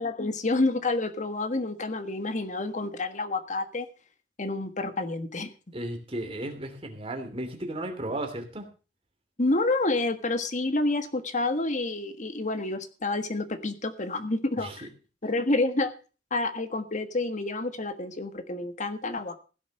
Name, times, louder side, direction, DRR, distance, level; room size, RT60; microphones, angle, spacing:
voice 1, 0.0-3.9 4.4-5.5 9.4-14.9 15.2-15.9 16.3-19.4, left 2 dB, 40° left, 9 dB, 1.5 m, -28 dB
voice 2, 5.7-8.7 14.6-14.8, right 1 dB, 30° right, 5 dB, 3.0 m, -34 dB
16.0 x 6.9 x 6.6 m, 0.36 s
head